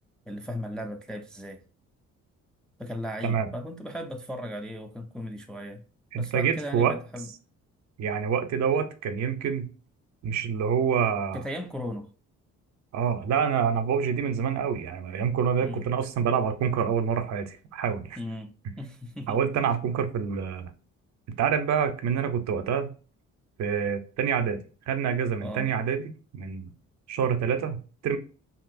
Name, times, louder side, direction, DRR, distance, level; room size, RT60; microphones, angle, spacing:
voice 1, 0.3-1.6 2.8-5.8 6.1-7.3 11.3-12.1 15.6-15.9 18.2-18.5 18.8-19.4 19.7-19.8 25.4-25.7, equal, 5° left, 0.3 m, -36 dB
voice 2, 6.1-6.9 8.0-9.7 10.2-11.4 12.9-18.2 19.3-20.7 21.4-22.9 23.6-24.6 24.9-26.7 27.1-28.2, right 7 dB, 65° right, 0.6 m, -27 dB
2.9 x 2.6 x 2.5 m
cardioid pair, 90°, 30 cm